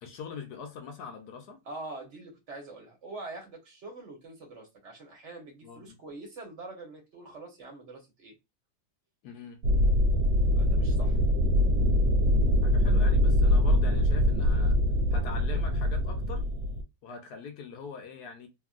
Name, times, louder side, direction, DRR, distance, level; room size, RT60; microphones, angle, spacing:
voice 1, 0.0-1.6 5.6-6.0 9.2-9.6 12.6-14.8 15.1-16.4 17.0-18.5, left 5 dB, 70° left, 1.0 m, -43 dB
voice 2, 1.6-8.4 10.5-11.2, right 2 dB, 45° right, 1.1 m, -44 dB
sound 1, 9.6-16.8, left 1 dB, 80° right, 1.2 m, -23 dB
2.9 x 2.6 x 2.4 m
omnidirectional pair, 1.9 m